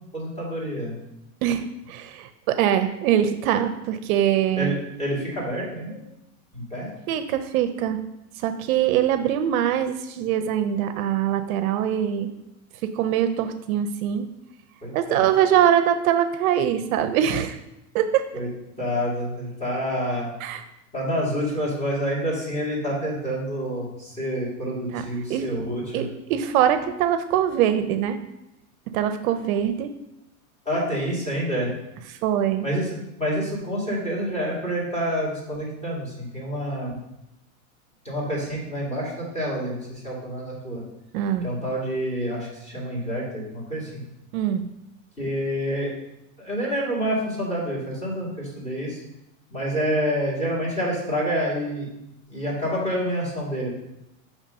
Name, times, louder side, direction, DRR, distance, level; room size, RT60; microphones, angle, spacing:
voice 1, 0.1-1.0 4.6-6.0 6.5-6.9 14.8-15.3 18.3-18.5 18.8-20.3 20.9-26.1 30.6-31.7 32.6-37.0 38.0-40.8 41.4-44.0 45.2-45.9 46.4-49.0 49.5-51.9 52.3-53.7, equal, 15° left, -5 dB, 2.4 m, -28 dB
voice 2, 1.4-4.7 7.1-8.0 8.4-12.3 12.8-14.3 14.9-17.6 17.9-18.3 20.4-20.6 24.9-25.0 25.3-25.5 25.9-28.2 28.9-29.9 32.2-32.7 41.1-41.5 44.3-44.6, right 10 dB, 65° right, 9 dB, 0.6 m, -23 dB
6.5 x 3.2 x 5.2 m, 0.88 s
supercardioid pair, 155°, 45 cm